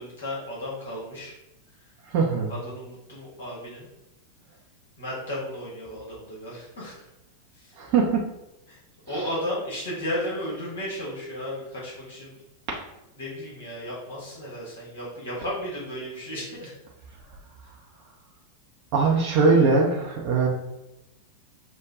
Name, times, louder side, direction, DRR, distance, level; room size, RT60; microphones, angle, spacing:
voice 1, 0.0-1.3 2.5-3.9 5.0-7.0 7.5-7.7 8.7-8.8 9.1-12.4 13.2-16.7, equal, 65° left, -6 dB, 1.5 m, -34 dB
voice 2, 2.0-2.5 7.8-8.2 9.1-9.3 12.7-12.8 18.9-20.5, right 4 dB, 45° right, -2 dB, 0.6 m, -21 dB
6.0 x 2.2 x 3.5 m, 0.94 s
figure-of-eight pair, 90°, 0 cm